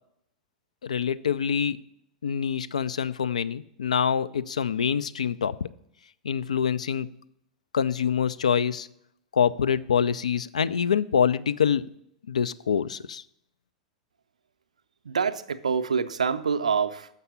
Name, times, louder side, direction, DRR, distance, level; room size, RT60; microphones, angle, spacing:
voice 1, 0.8-1.8 2.2-5.7 6.2-7.1 7.7-8.9 9.3-11.9 12.3-13.2, left 7 dB, 70° left, 0.3 m, -25 dB
voice 2, 15.0-17.1, right 6 dB, 70° right, 0.5 m, -26 dB
7.2 x 5.4 x 7.0 m
figure-of-eight pair, 95°, 4 cm